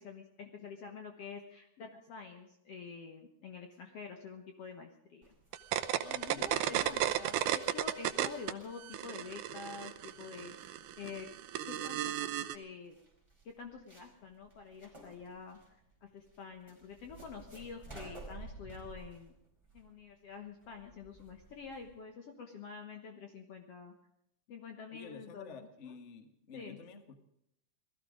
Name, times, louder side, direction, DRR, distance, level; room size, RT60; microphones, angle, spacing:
voice 1, 0.0-5.3 6.3-11.3 11.6-13.0 13.5-15.6 16.0-19.3 19.7-23.9 24.5-25.9 26.5-26.8, left 5 dB, 55° left, 4 dB, 2.0 m, -47 dB
sound 1, 5.2-22.0, right 2 dB, 10° right, 4.9 m, -55 dB
sound 2, 5.5-8.5 8.8-12.6, right 12 dB, 75° right, 2.1 m, -34 dB
voice 2, 6.0-7.2 24.9-27.2, left 5 dB, 75° left, 8 dB, 0.6 m, -51 dB
19.5 x 14.0 x 5.0 m, 0.76 s
omnidirectional pair, 3.8 m